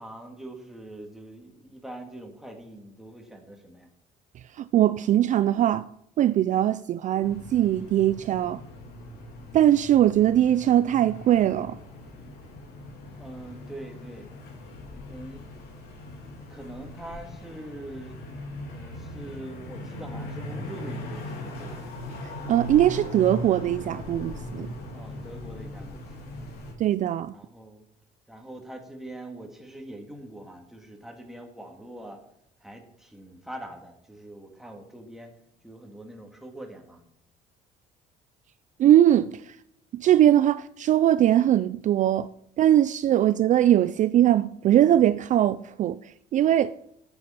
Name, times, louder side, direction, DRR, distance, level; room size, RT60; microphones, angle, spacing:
voice 1, 0.0-3.9 13.2-14.3 15.0-15.5 15.8-18.2 18.7-21.8 24.9-26.3 27.3-27.9 28.3-32.2 32.6-35.3 35.6-37.0, right 1 dB, ahead, 2.1 m, -43 dB
voice 2, 4.6-5.9 6.2-8.6 9.5-11.8 22.5-24.7 26.8-27.3 38.8-39.5 39.9-42.3 42.6-46.0 46.3-46.7, right 11 dB, 50° right, 0.4 m, -21 dB
sound 1, 7.2-26.7, left 1 dB, 75° left, 3.0 m, -39 dB
9.4 x 8.0 x 5.7 m
cardioid pair, 110°, 17 cm